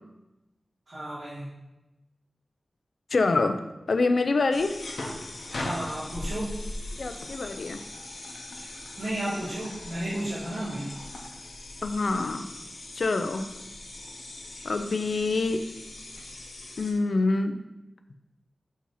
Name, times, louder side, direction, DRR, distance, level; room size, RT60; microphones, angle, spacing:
voice 1, 0.9-1.5 5.5-6.5 9.0-10.9, right 1 dB, 60° right, -10 dB, 1.7 m, -33 dB
voice 2, 3.1-3.6 3.9-4.8 7.0-7.8 11.8-12.5 13.0-13.5 14.6-15.6 16.8-17.6, left 3 dB, 70° left, 8 dB, 0.5 m, -25 dB
sound 1, 4.5-16.9, left 2 dB, 85° left, 1.0 m, -40 dB
7.3 x 2.8 x 5.5 m, 1.0 s
wide cardioid pair, 105°, 0 cm